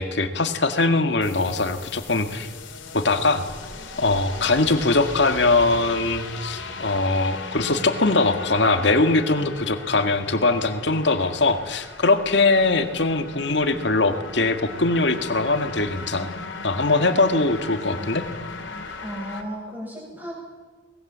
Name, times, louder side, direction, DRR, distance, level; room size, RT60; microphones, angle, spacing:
voice 1, 0.0-2.5 2.9-3.5 4.0-16.3 16.6-18.2, left 3 dB, 65° left, 7 dB, 2.0 m, -21 dB
sound 1, 1.2-19.4, left 3 dB, 80° left, 3.2 m, -37 dB
voice 2, 19.0-20.3, equal, 10° right, -2 dB, 7.7 m, -34 dB
24.0 x 20.5 x 7.6 m, 1.4 s
head